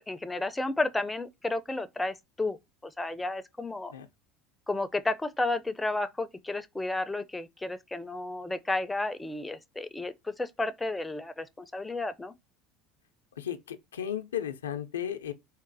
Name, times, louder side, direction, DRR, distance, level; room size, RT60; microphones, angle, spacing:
voice 1, 0.0-2.6 2.8-3.9 4.7-12.3, left 2 dB, 10° left, 0.4 m, -32 dB
voice 2, 13.4-15.3, left 10 dB, 90° left, 0.4 m, -34 dB
3.9 x 2.0 x 2.6 m
hypercardioid pair, 80°, 0 cm